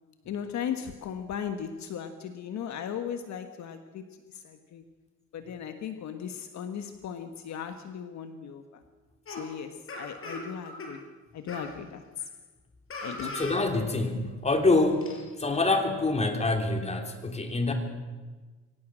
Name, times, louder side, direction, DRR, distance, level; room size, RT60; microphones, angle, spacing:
voice 1, 0.2-4.8 5.3-8.8 9.3-11.0 11.3-12.3 13.0-13.4, left 8 dB, 65° left, 8 dB, 1.5 m, -37 dB
sound 1, 9.2-9.4 9.9-10.9 11.5-11.7 12.9-13.6 13.9-14.0 14.8-15.2, left 2 dB, 45° left, 6.0 m, -38 dB
voice 2, 13.3-15.1 15.4-17.7, left 2 dB, 20° left, 4 dB, 3.2 m, -26 dB
23.5 x 18.0 x 6.3 m, 1.3 s
cardioid pair, 120°, 30 cm